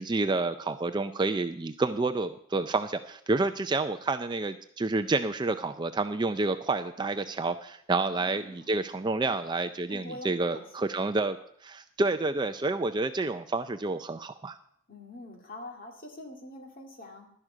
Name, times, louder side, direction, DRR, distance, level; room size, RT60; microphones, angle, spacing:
voice 1, 0.0-11.4 11.6-14.6, right 3 dB, 20° right, 9 dB, 0.4 m, -29 dB
voice 2, 8.1-8.8 9.9-11.0 14.9-17.3, left 1 dB, 40° left, 2 dB, 2.1 m, -45 dB
12.0 x 11.0 x 4.9 m, 0.65 s
head